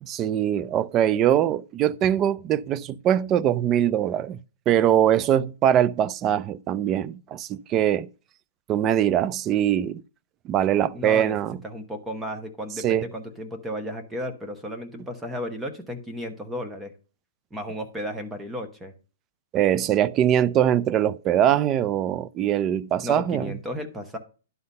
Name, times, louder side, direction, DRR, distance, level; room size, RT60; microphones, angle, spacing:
voice 1, 0.0-4.4 4.7-8.1 8.7-10.0 10.5-11.6 12.8-13.1 19.5-23.5, right 10 dB, 25° right, 0.3 m, -22 dB
voice 2, 10.9-11.3 11.6-16.9 17.5-18.9 23.0-24.2, equal, 10° right, 1.0 m, -34 dB
11.0 x 3.9 x 5.4 m
hypercardioid pair, 155°, 0 cm